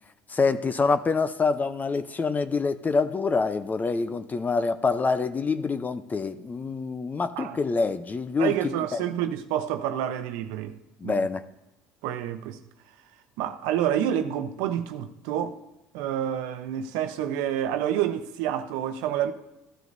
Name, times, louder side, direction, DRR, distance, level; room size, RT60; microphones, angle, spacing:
voice 1, 0.3-9.0 11.0-11.4, left 4 dB, 25° left, 0.7 m, -26 dB
voice 2, 8.4-10.8 11.0-11.3 12.0-12.6 13.4-15.6 15.9-19.3, right 10 dB, 80° right, 0.9 m, -28 dB
15.0 x 12.5 x 2.7 m
supercardioid pair, 90°, 7 cm